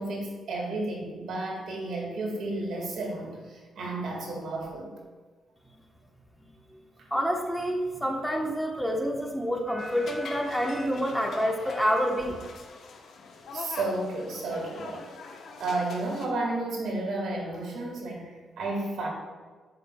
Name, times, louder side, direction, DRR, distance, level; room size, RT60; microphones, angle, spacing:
voice 1, 0.0-4.9 7.0-7.1 13.5-15.1 15.6-19.1, right 2 dB, 75° right, 0 dB, 1.8 m, -32 dB
voice 2, 7.1-12.4, equal, ahead, 1 dB, 1.0 m, -28 dB
sound 1, 9.8-16.3, left 4 dB, 70° left, 0.9 m, -43 dB
10.5 x 5.1 x 2.3 m, 1.4 s
cardioid pair, 70°, 0 cm